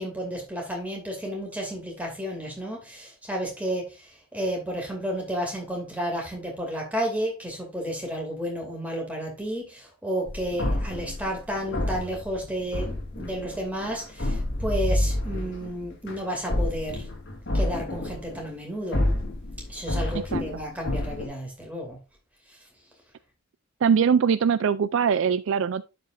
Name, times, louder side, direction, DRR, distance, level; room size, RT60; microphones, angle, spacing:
voice 1, 0.0-17.1 17.5-19.1 19.7-22.0 22.5-22.6, equal, 5° right, 2.5 m, -32 dB
sound 1, 10.3-18.5 18.9-21.3, left 1 dB, 55° left, 1.7 m, -29 dB
voice 2, 23.8-25.8, right 6 dB, 65° right, 0.3 m, -22 dB
11.5 x 5.2 x 2.6 m
head